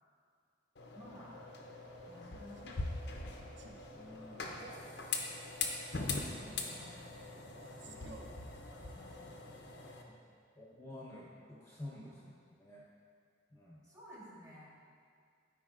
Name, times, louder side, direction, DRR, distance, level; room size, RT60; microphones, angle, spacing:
sound 1, 0.8-10.0, left 3 dB, 60° left, 0.7 m, -42 dB
voice 1, 0.9-1.4 2.1-3.2 4.9-5.1 6.1-6.9 7.2-7.5 8.7-9.6 12.1-12.2 13.8-14.7, equal, 20° right, -6 dB, 1.5 m, -55 dB
Male speech man speaking, 2.6-2.9 3.6-3.9 4.5-4.9 5.9-6.3 7.6-8.4, right 2 dB, 70° right, 0.6 m, -54 dB
voice 2, 3.9-4.6 6.4-6.5 7.8-8.3 10.6-12.2 12.6-12.8 13.5-13.8, left 1 dB, 15° left, -6 dB, 0.8 m, -50 dB
12.5 x 5.0 x 2.5 m, 2.3 s
head